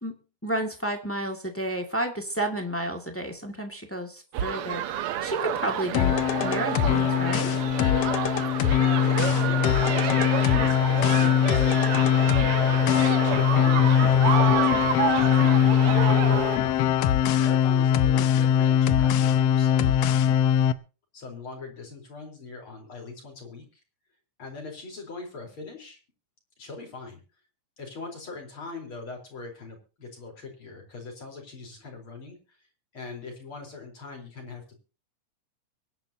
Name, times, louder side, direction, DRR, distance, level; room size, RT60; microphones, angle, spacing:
voice 1, 0.0-7.5, right 1 dB, 5° left, 3 dB, 1.4 m, -31 dB
sound 1, 4.3-16.6, right 11 dB, 70° right, 1.4 m, -30 dB
sound 2, 5.9-20.7, left 9 dB, 70° left, 1.7 m, -21 dB
voice 2, 9.0-11.9 12.8-16.1 16.5-20.1 21.1-23.8 24.4-26.0 26.6-27.2 27.8-32.6 32.9-34.8, left 3 dB, 45° left, 2 dB, 4.9 m, -41 dB
23.5 x 10.5 x 2.9 m, 0.34 s
omnidirectional pair, 3.3 m